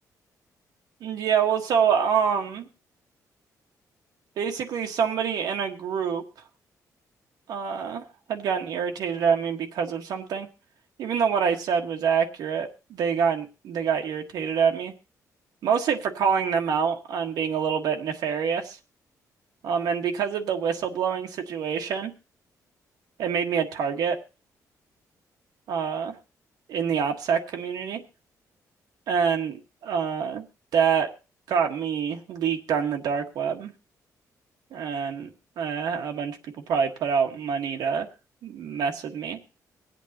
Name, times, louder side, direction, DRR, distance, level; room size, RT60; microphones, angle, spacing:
voice 1, 1.0-2.7 4.4-6.2 7.5-10.5 11.0-14.9 15.6-18.8 19.6-22.1 23.2-24.2 25.7-26.1 26.7-28.0 29.1-30.4 30.7-31.1 31.5-33.7 34.7-35.3 35.6-36.4 36.7-38.1 38.4-39.4, right 7 dB, 85° right, 3 dB, 1.4 m, -26 dB
24.0 x 8.3 x 2.8 m, 0.32 s
cardioid pair, 145°, 7 cm